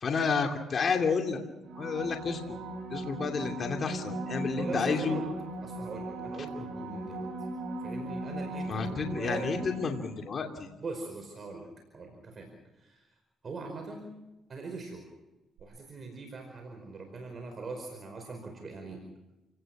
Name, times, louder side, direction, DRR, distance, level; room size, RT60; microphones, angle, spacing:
voice 1, 0.0-1.4 1.8-2.4 2.9-5.2 8.7-10.7, left 5 dB, 45° left, 3 dB, 2.6 m, -30 dB
sound 1, 1.6-10.2 15.6-15.7, right 1 dB, 75° right, 5.8 m, -38 dB
voice 2, 4.5-5.3 5.6-7.3 7.8-9.6 10.8-13.1 13.4-14.1 14.5-15.1 15.6-19.0, right 3 dB, 40° right, 3 dB, 4.9 m, -41 dB
28.5 x 18.0 x 6.1 m, 0.99 s
cardioid pair, 90°, 0 cm